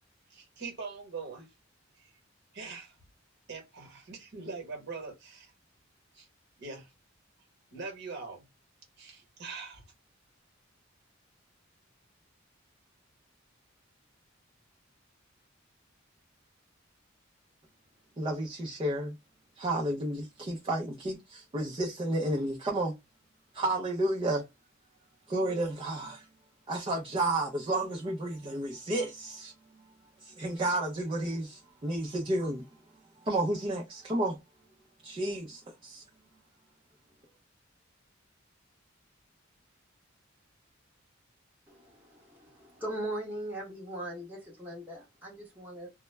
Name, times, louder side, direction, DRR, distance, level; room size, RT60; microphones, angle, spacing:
voice 1, 0.3-1.5 2.0-2.1 2.5-2.9 3.5-5.5 6.1-6.3 6.6-6.9 7.7-8.4 9.0-9.8, right 4 dB, 55° right, 1.1 m, -42 dB
voice 2, 18.2-19.1 19.6-22.9 23.5-24.5 25.3-26.3 26.7-29.5 30.2-32.6 33.2-34.4 35.0-36.0, right 1 dB, 25° right, 0.4 m, -31 dB
voice 3, 41.7-45.9, right 1 dB, 10° right, 0.9 m, -40 dB
2.2 x 2.0 x 3.2 m
head